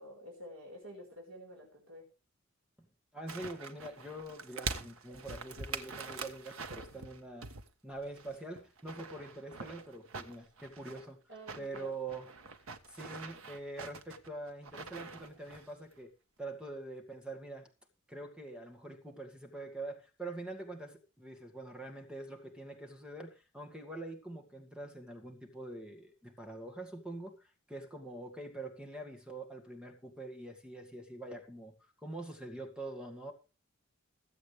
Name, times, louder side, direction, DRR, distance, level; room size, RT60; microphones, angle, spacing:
voice 1, 0.0-2.1 11.3-11.9, equal, 70° right, 0 dB, 5.4 m, -49 dB
voice 2, 3.1-7.5 7.8-11.2 11.6-12.3 12.9-16.1 16.4-17.7 18.1-31.7 32.0-33.3, right 2 dB, 5° right, 3 dB, 2.1 m, -44 dB
sound 1, 3.3-7.7 8.0-11.1 11.4-15.7 16.0-16.1, right 4 dB, 90° right, 1.5 m, -44 dB
22.0 x 8.0 x 3.4 m, 0.31 s
head